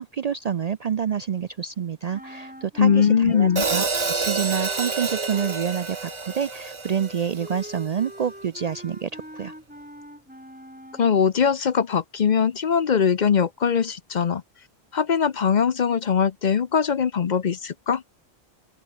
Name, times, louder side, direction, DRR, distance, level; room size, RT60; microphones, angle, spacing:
voice 1, 0.0-9.5, right 8 dB, 55° right, 0.5 m, -28 dB
sound 1, 2.1-11.3, equal, 10° right, 3.5 m, -43 dB
voice 2, 2.8-3.7 11.0-14.4 14.9-18.0, left 7 dB, 50° left, 0.7 m, -21 dB
Hi-hat, 3.6-7.7, right 4 dB, 30° right, 0.9 m, -28 dB
open air
omnidirectional pair, 1.1 m